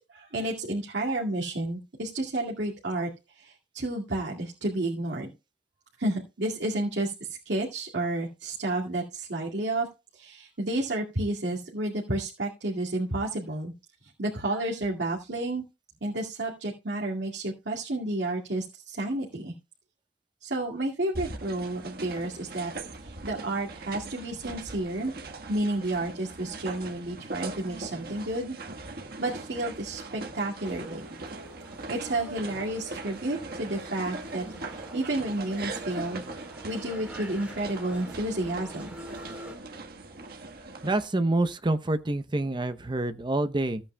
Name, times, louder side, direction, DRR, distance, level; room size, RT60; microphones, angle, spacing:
voice 1, 0.1-5.3 6.0-9.9 10.1-13.7 14.0-15.6 16.0-19.5 20.4-22.7 23.0-25.1 25.5-28.5 29.2-31.1 31.9-36.2 36.6-38.9, right 2 dB, 80° right, 2.2 m, -31 dB
sound 1, 21.1-41.1, right 3 dB, 60° right, 1.5 m, -41 dB
sound 2, 30.6-39.6, right 1 dB, 10° right, 3.7 m, -46 dB
voice 2, 40.8-43.8, right 2 dB, 25° right, 0.8 m, -27 dB
16.0 x 8.7 x 2.2 m
head